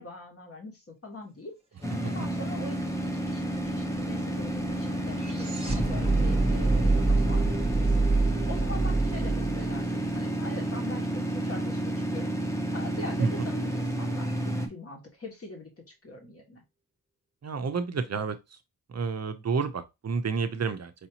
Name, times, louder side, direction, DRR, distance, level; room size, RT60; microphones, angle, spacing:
voice 1, 0.0-1.5 2.0-12.3 12.7-15.7 16.0-16.6, left 2 dB, 40° left, 1.3 m, -43 dB
sound 1, 1.8-14.7, right 1 dB, 10° left, 0.7 m, -31 dB
sound 2, 2.3-2.4 2.6-10.8, right 3 dB, 15° right, 1.1 m, -27 dB
voice 2, 17.4-18.4 18.9-20.9, right 5 dB, 45° right, 0.5 m, -29 dB
4.9 x 2.7 x 2.8 m
wide cardioid pair, 150°, 38 cm